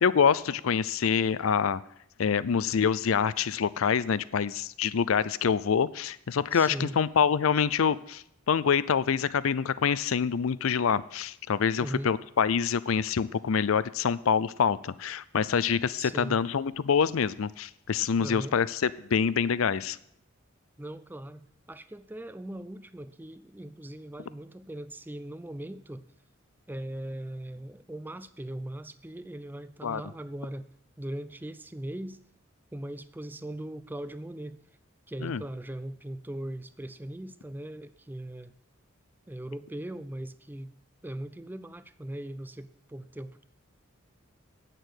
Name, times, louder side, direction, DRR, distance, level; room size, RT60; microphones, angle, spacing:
voice 1, 0.0-1.8 2.2-20.0 29.8-30.0 35.2-35.4, left 6 dB, 75° left, 17 dB, 0.5 m, -26 dB
voice 2, 6.5-7.0 11.8-12.1 16.0-16.4 18.2-18.6 20.8-26.0 26.7-30.7 31.0-32.2 32.7-34.6 35.1-38.5 39.3-40.7 41.0-43.4, right 1 dB, 10° right, 13 dB, 0.4 m, -39 dB
9.1 x 6.6 x 7.9 m, 0.71 s
head